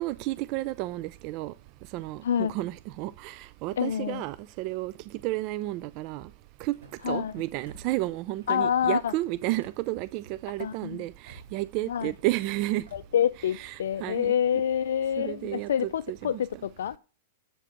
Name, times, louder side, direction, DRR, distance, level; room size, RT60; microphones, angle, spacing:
voice 1, 0.0-1.5 1.9-4.9 5.2-6.3 6.6-6.8 7.1-12.8 13.4-14.3 15.2-16.4, right 17 dB, 45° right, 0.4 m, -32 dB
voice 2, 3.8-4.2 7.0-7.3 8.5-9.1 10.6-11.0 11.9-12.1 12.9-17.0, left 9 dB, 70° left, 0.4 m, -27 dB
Car / Slam, 6.6-7.1 7.6-8.0 8.4-9.0 9.6-9.8 10.2-10.7 11.3-11.7 12.1-12.5 12.9-13.2, right 3 dB, 70° right, 3.4 m, -52 dB
7.9 x 5.0 x 7.4 m
hypercardioid pair, 110°, 0 cm